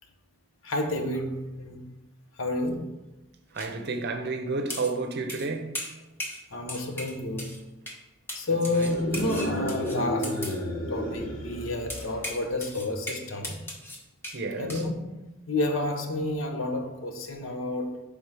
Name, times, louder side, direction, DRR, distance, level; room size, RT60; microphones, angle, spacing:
voice 1, 0.6-1.9 2.4-3.0 6.5-7.6 8.3-13.7 14.6-18.0, left 2 dB, 85° left, 0.9 m, -30 dB
voice 2, 3.5-5.7 8.7-8.9 14.3-14.8, right 3 dB, 55° right, 0.7 m, -31 dB
sound 1, 3.6-3.7 4.7-5.0 5.3-5.5 5.7-6.4 6.7-7.6 7.9-8.0 8.3-10.6 11.9-14.4 14.7-14.9, left 1 dB, 10° left, 0.8 m, -38 dB
sound 2, 8.8-12.4, equal, 50° left, 1.1 m, -32 dB
4.7 x 3.6 x 5.5 m
head